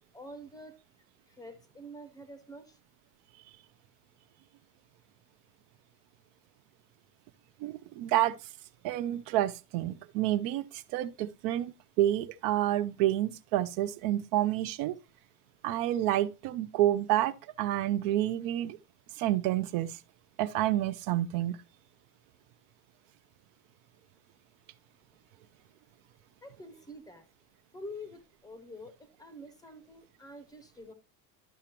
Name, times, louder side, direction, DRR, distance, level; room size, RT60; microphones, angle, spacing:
voice 1, 0.1-0.8 1.3-2.8 26.4-27.3 27.7-30.9, left 1 dB, 10° left, 0.6 m, -47 dB
voice 2, 7.6-8.4 8.8-15.0 15.6-18.8 19.2-20.0 20.4-21.6, right 13 dB, 55° right, 0.5 m, -29 dB
12.0 x 5.9 x 2.9 m
cardioid pair, 170°, 42 cm